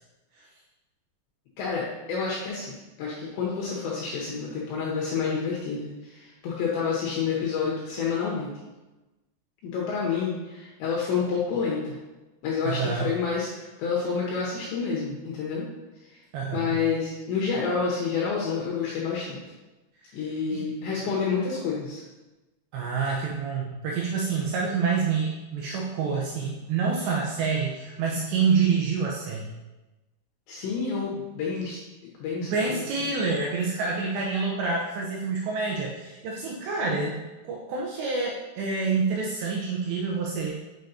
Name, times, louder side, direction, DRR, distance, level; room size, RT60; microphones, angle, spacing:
voice 1, 1.6-8.5 9.6-12.0 12.4-15.7 16.5-19.4 20.1-22.0 30.5-31.8 32.2-32.8 36.8-37.1, left 5 dB, 75° left, -4 dB, 3.0 m, -29 dB
voice 2, 12.6-13.1 16.3-16.8 20.5-20.7 22.7-29.5 32.5-37.2 37.5-40.5, right 5 dB, 85° right, -2 dB, 2.6 m, -27 dB
6.8 x 6.2 x 2.7 m, 1.1 s
omnidirectional pair, 5.7 m